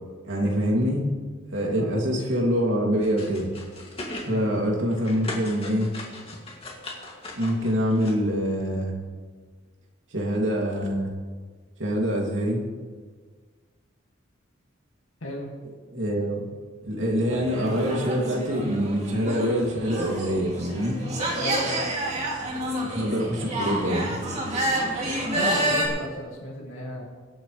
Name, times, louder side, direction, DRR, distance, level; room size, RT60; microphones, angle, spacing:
voice 1, 0.2-1.1 1.5-3.5 4.2-5.9 7.4-8.9 10.1-11.1 11.8-12.6 15.9-16.5 16.8-21.0 22.8-24.2, equal, 70° right, -1 dB, 2.6 m, -25 dB
sound 1, 3.0-4.3 4.7-8.1, left 2 dB, 30° left, 2.4 m, -38 dB
voice 2, 4.2-4.6 15.2-15.5 21.4-21.9 25.3-27.0, left 1 dB, 85° left, -3 dB, 2.2 m, -34 dB
sound 2, 17.3-25.9, right 1 dB, 35° right, 2.7 m, -29 dB
24.5 x 8.9 x 3.3 m, 1.5 s
head